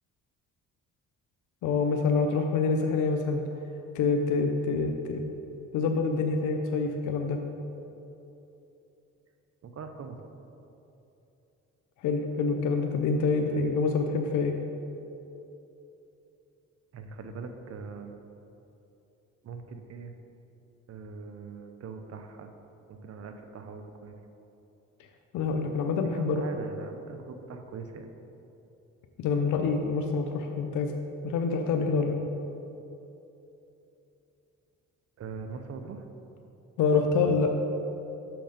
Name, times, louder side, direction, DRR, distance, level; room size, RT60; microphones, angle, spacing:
voice 1, 1.6-3.4 3.9-5.2 5.7-7.4 12.0-14.6 25.3-26.4 29.2-30.9 31.2-32.1 36.8-37.5, left 4 dB, 80° left, 4 dB, 0.6 m, -26 dB
voice 2, 9.6-10.2 16.9-18.2 19.4-20.1 20.9-22.5 22.9-24.2 26.1-28.1 35.2-36.0, right 5 dB, 55° right, 7 dB, 0.7 m, -41 dB
6.3 x 6.0 x 5.1 m, 2.9 s
cardioid pair, 90°, 30 cm